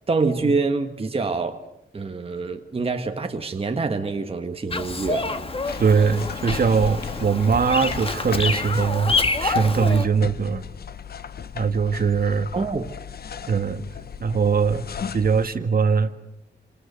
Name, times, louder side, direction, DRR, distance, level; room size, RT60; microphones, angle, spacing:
voice 1, 0.1-1.6 1.9-5.3 12.5-12.9, right 4 dB, 30° right, 5 dB, 1.4 m, -26 dB
Bird vocalization bird call bird song, 4.7-10.1, left 3 dB, 30° left, 1.7 m, -27 dB
sound 1, 5.6-15.5, left 7 dB, 55° left, 1.0 m, -36 dB
voice 2, 5.8-10.6 11.5-12.5 13.5-13.8 14.2-14.9 15.1-16.1, right 5 dB, 50° right, 9 dB, 1.7 m, -21 dB
30.0 x 26.0 x 6.8 m, 0.80 s
wide cardioid pair, 150°, 19 cm